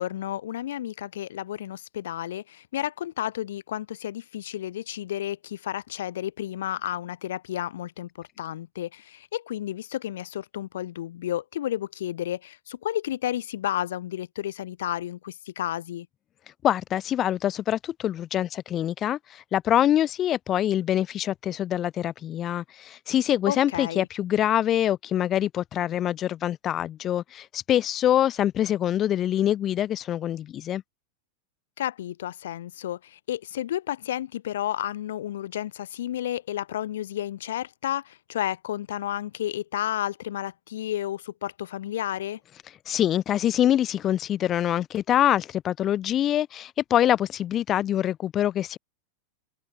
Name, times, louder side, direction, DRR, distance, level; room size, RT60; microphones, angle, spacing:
voice 1, 0.0-16.1 23.5-24.1 31.8-42.4, left 12 dB, 60° left, 7.7 m, -32 dB
voice 2, 16.6-30.8 42.9-48.8, left 11 dB, 30° left, 1.3 m, -25 dB
figure-of-eight pair, 90°, 0 cm